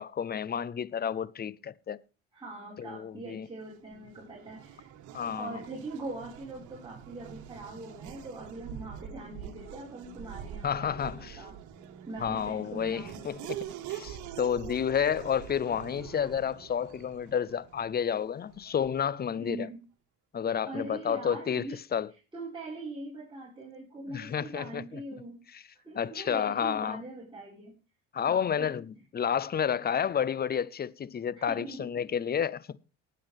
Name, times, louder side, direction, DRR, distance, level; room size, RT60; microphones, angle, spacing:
voice 1, 0.0-2.0 2.8-3.5 5.1-5.6 10.6-11.4 12.2-13.6 13.9-19.7 20.3-22.1 24.1-25.0 25.5-25.6 26.0-27.0 28.1-32.8, left 8 dB, 30° left, 0.7 m, -30 dB
voice 2, 2.3-4.9 5.4-11.5 12.1-13.4 19.4-19.8 20.7-21.8 22.3-25.4 25.8-27.8 28.2-28.7 31.4-31.9, right 2 dB, 15° right, 5.1 m, -42 dB
Race car auto racing / Accelerating revving vroom, 3.6-19.2, right 10 dB, 65° right, 1.6 m, -45 dB
19.0 x 7.7 x 3.5 m
hypercardioid pair, 65°, 32 cm